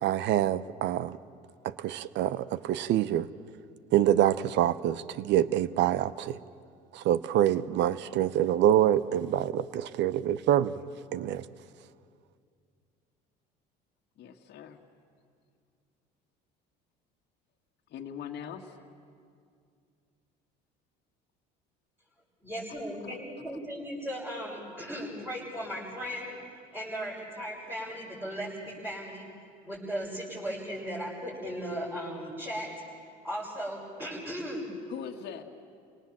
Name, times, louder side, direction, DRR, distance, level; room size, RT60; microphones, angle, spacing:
voice 1, 0.0-1.2 1.8-3.3 3.9-6.4 6.9-10.7 11.1-11.4, right 11 dB, 60° right, 0.8 m, -26 dB
voice 2, 14.2-14.9 17.9-18.8 23.0-23.2 34.9-35.4, left 8 dB, 55° left, 1.8 m, -41 dB
voice 3, 22.4-26.4 26.7-29.3 29.6-32.7 33.2-34.7, equal, 10° right, 7.0 m, -37 dB
29.5 x 18.5 x 7.4 m
supercardioid pair, 85°, 20 cm